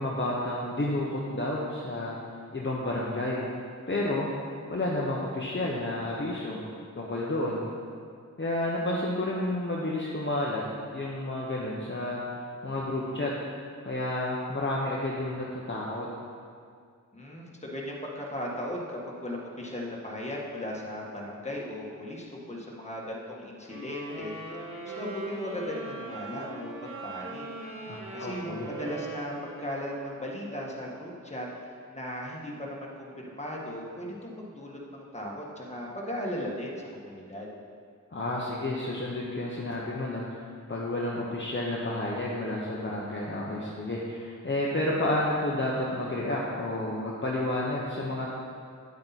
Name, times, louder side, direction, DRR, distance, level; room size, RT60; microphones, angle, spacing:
voice 1, 0.0-2.2 2.5-3.4 3.9-4.3 4.7-6.6 6.9-7.7 8.4-10.6 10.9-13.3 13.8-16.1 27.9-28.7 38.1-48.3, left 1 dB, 35° left, -5 dB, 1.1 m, -31 dB
voice 2, 17.1-27.5 27.7-37.5, left 1 dB, 20° left, -3 dB, 1.7 m, -37 dB
sound 1, 23.7-30.2, right 2 dB, 40° right, 2.0 m, -40 dB
9.7 x 8.6 x 4.2 m, 2.2 s
wide cardioid pair, 85°, 32 cm